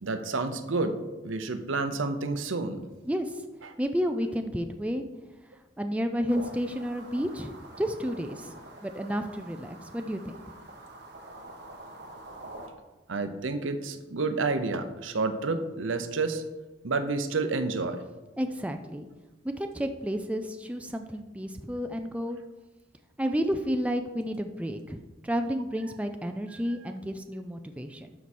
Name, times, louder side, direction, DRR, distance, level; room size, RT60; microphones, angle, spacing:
voice 1, 0.0-1.0 1.2-2.8 3.6-3.7 13.1-16.4 16.8-18.0, right 3 dB, 80° right, 9 dB, 0.7 m, -29 dB
voice 2, 3.1-3.4 3.8-5.1 5.8-8.5 8.8-10.4 18.4-19.1 19.4-22.4 23.2-28.1, equal, 5° right, 6 dB, 0.4 m, -31 dB
sound 1, 6.3-12.7, right 2 dB, 55° right, 1.3 m, -46 dB
12.0 x 4.7 x 4.3 m, 1.1 s
head